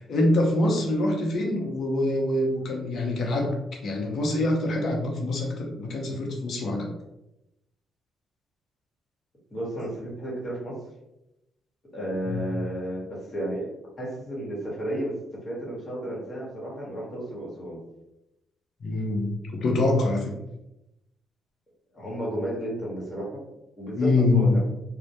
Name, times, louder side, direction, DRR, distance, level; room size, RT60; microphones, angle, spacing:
voice 1, 0.1-3.6 3.8-6.9 12.3-12.4 18.8-20.3 23.9-24.6, left 2 dB, 60° left, 0 dB, 0.6 m, -25 dB
voice 2, 9.5-10.8 11.9-17.8 21.9-23.4 23.8-24.6, right 1 dB, 35° left, -4 dB, 1.1 m, -33 dB
2.1 x 2.1 x 2.8 m, 0.90 s
cardioid pair, 90°, 0 cm